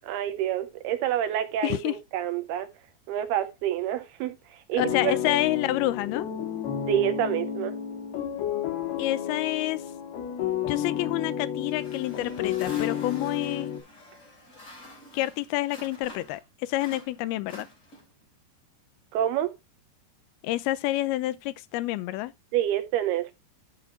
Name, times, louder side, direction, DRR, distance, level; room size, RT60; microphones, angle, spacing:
voice 1, 0.1-2.7 3.1-5.4 6.9-7.7 19.1-19.5 22.5-23.3, right 11 dB, 80° right, 2.6 m, -28 dB
voice 2, 1.6-1.9 4.8-6.3 9.0-9.8 10.7-13.7 15.1-17.7 20.4-22.3, left 16 dB, 80° left, 2.4 m, -28 dB
sound 1, 4.8-13.8, left 9 dB, 65° left, 4.0 m, -31 dB
sound 2, 11.7-16.4 16.7-18.2, left 1 dB, 25° left, 2.1 m, -47 dB
12.0 x 4.3 x 4.2 m
omnidirectional pair, 5.0 m